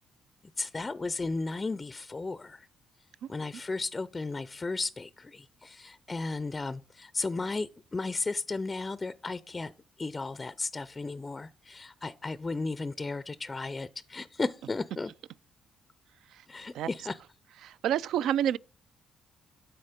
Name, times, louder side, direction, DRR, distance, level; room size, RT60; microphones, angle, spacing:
voice 1, 0.6-2.7 3.3-9.7 10.0-15.1 16.5-17.2, left 3 dB, 25° left, 0.4 m, -34 dB
voice 2, 17.6-18.6, right 10 dB, 80° right, 0.3 m, -29 dB
12.0 x 4.1 x 5.0 m
cardioid pair, 90°, 0 cm